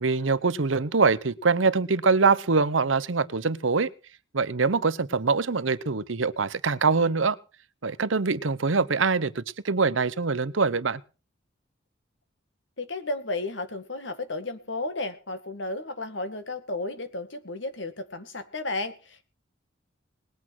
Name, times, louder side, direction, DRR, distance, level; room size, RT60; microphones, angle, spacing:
voice 1, 0.0-3.9 4.3-7.4 7.8-11.0, right 4 dB, 80° right, 0.9 m, -24 dB
voice 2, 12.8-19.2, left 2 dB, 65° left, 2.1 m, -33 dB
20.0 x 8.6 x 6.2 m
head